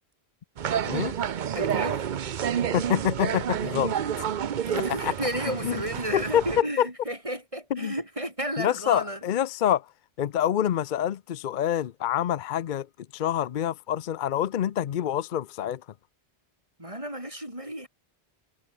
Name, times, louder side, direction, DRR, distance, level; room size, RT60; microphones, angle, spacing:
sound 1, 0.6-6.6, right 8 dB, 55° right, 0.7 m, -29 dB
voice 1, 1.5-2.1 4.6-9.2 16.8-17.9, right 1 dB, 30° right, 7.4 m, -33 dB
voice 2, 2.7-3.9 5.0-5.1 5.5-5.8 6.1-6.9 7.7-7.9 8.6-9.9 10.2-12.9 13.1-15.8, left 10 dB, 55° left, 0.7 m, -26 dB
omnidirectional pair, 1.1 m